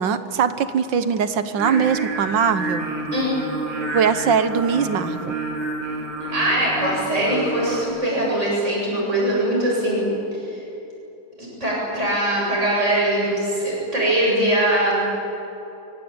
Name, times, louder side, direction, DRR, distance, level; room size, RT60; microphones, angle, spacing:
voice 1, 0.0-2.9 3.9-5.4, right 7 dB, 65° right, 12 dB, 1.7 m, -21 dB
Singing, 1.6-7.8, right 2 dB, 90° right, 4.3 m, -29 dB
voice 2, 6.3-10.1 10.5-10.6 11.4-15.0, right 1 dB, 35° right, -4 dB, 8.5 m, -22 dB
24.5 x 23.0 x 8.9 m, 3.0 s
omnidirectional pair, 2.3 m